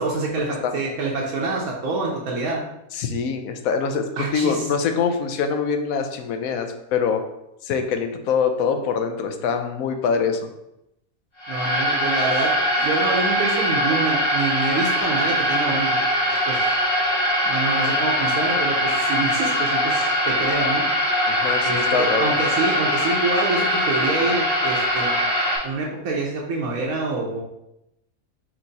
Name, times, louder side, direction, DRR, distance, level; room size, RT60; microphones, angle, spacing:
voice 1, 0.0-2.7 4.2-4.7 11.5-12.5 12.8-16.0 16.3-16.6 17.4-20.8 21.6-25.2 25.6-27.4, right 3 dB, 75° right, -2 dB, 1.2 m, -26 dB
voice 2, 2.9-7.2 7.6-10.5 21.3-22.3, left 6 dB, 75° left, 6 dB, 1.0 m, -24 dB
sound 1, 11.4-25.6, equal, 45° left, 1.9 m, -22 dB
4.5 x 2.9 x 3.9 m, 0.84 s
omnidirectional pair, 1.5 m